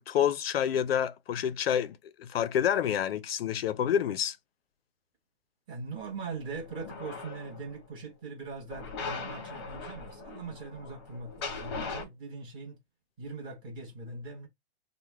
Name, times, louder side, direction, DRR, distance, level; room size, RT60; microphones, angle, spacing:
voice 1, 0.0-4.4, left 9 dB, 65° left, 0.4 m, -28 dB
voice 2, 5.7-12.8 13.2-14.5, right 4 dB, 15° right, 1.0 m, -41 dB
sound 1, 6.4-7.8 8.7-12.0, left 4 dB, 25° left, 0.7 m, -40 dB
3.2 x 2.1 x 3.3 m
hypercardioid pair, 165°, 32 cm